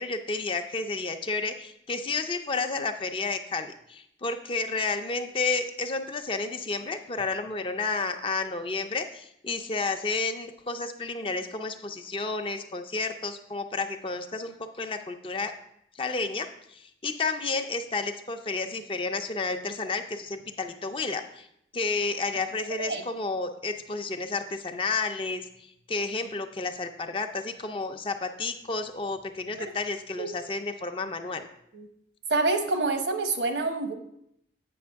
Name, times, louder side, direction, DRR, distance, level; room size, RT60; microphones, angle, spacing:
voice 1, 0.0-15.5 16.0-21.5 21.7-31.5, left 3 dB, 30° left, 7 dB, 0.4 m, -31 dB
voice 2, 32.3-33.9, right 3 dB, 85° right, 6 dB, 0.9 m, -27 dB
8.5 x 5.7 x 3.5 m, 0.74 s
head